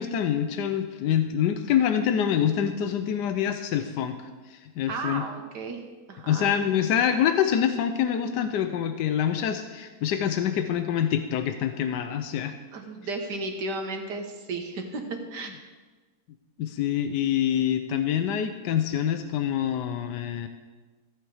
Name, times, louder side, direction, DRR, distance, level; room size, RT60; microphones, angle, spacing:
voice 1, 0.0-4.2 4.5-5.2 6.3-12.5 16.6-20.5, left 9 dB, 90° left, 8 dB, 1.3 m, -26 dB
voice 2, 4.9-5.8 6.1-6.5 12.7-15.0 15.3-15.5, right 3 dB, 80° right, 4 dB, 1.9 m, -34 dB
14.5 x 8.2 x 4.9 m, 1.3 s
omnidirectional pair, 1.8 m